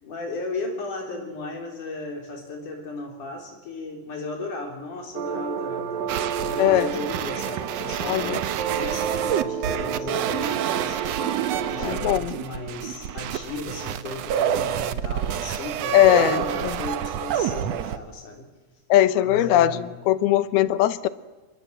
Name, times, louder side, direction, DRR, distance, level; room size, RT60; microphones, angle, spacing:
voice 1, 0.0-11.0 11.7-18.5 19.2-19.9, left 2 dB, 55° left, 4 dB, 5.0 m, -35 dB
sound 1, 5.2-12.0, right 8 dB, 70° right, 3.1 m, -30 dB
sound 2, 6.1-18.0, right 10 dB, 85° right, 1.4 m, -28 dB
voice 2, 6.6-6.9 8.0-8.4 11.8-12.3 15.9-16.8 18.9-19.8 20.1-21.1, left 13 dB, 80° left, 15 dB, 2.8 m, -20 dB
28.5 x 22.0 x 7.9 m, 1.3 s
omnidirectional pair, 4.4 m